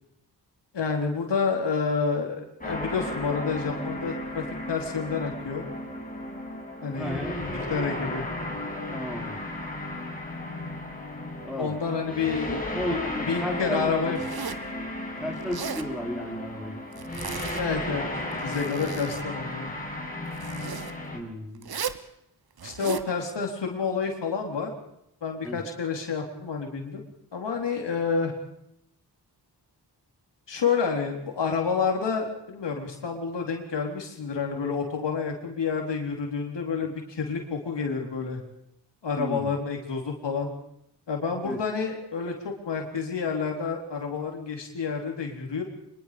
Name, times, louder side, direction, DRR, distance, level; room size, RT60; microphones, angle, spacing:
voice 1, 0.7-5.7 6.8-8.3 11.6-12.6 13.3-14.2 17.6-18.1 18.4-19.7 22.6-24.7 25.2-27.0 27.3-28.3 30.5-38.4 39.0-40.5 41.1-45.6, left 5 dB, 80° left, 2 dB, 4.1 m, -29 dB
sound 1, 2.6-21.2, left 1 dB, 20° left, 6.3 m, -34 dB
voice 2, 7.0-7.6 8.9-9.4 11.4-11.8 12.7-14.2 15.2-16.8 21.1-21.7 25.4-25.6 39.1-39.5 41.4-41.6, equal, ahead, 1 dB, 4.6 m, -34 dB
Zipper (clothing), 14.2-14.7 15.4-15.9 16.9-17.8 18.3-19.3 20.3-20.9 21.6-22.1 22.6-23.1, right 7 dB, 60° right, 1.3 m, -36 dB
24.5 x 22.5 x 5.2 m, 0.78 s
cardioid pair, 65°, 42 cm